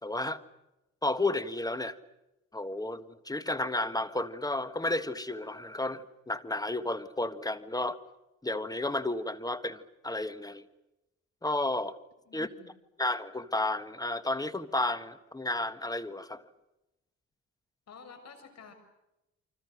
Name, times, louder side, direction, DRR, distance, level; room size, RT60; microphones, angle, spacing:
voice 1, 0.0-0.4 1.0-2.0 2.5-8.0 8.4-10.6 11.4-12.0 12.3-12.5 13.0-16.4, left 2 dB, 10° left, 1.5 m, -32 dB
voice 2, 12.3-12.7 17.9-18.7, left 5 dB, 60° left, 6.7 m, -51 dB
29.0 x 25.0 x 6.5 m
cardioid pair, 90°, 30 cm